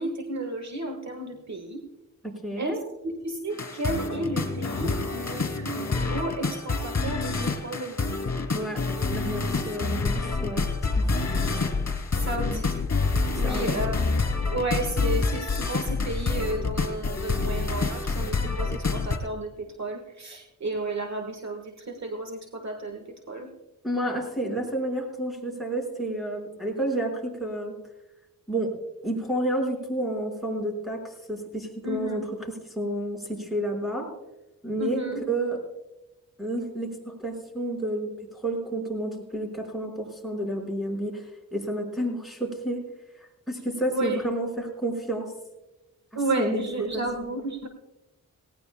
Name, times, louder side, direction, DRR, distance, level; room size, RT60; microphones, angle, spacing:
voice 1, 0.0-1.8 2.6-2.7 3.0-8.3 12.2-12.7 13.4-14.0 14.5-23.5 31.8-32.2 34.8-35.2 43.9-44.2 46.1-47.7, right 2 dB, 55° right, 4 dB, 1.6 m, -32 dB
voice 2, 2.2-2.8 8.5-8.8 9.1-10.7 10.9-11.0 13.4-13.8 23.8-27.7 28.5-28.7 29.0-32.2 32.5-34.1 34.6-35.6 36.4-42.8 43.2-45.3 46.4-46.6 46.9-47.3, right 1 dB, ahead, 0 dB, 5.0 m, -30 dB
sound 1, 3.5-19.2, left 3 dB, 50° left, 2.6 m, -27 dB
19.0 x 18.0 x 2.2 m, 0.98 s
cardioid pair, 70°, 34 cm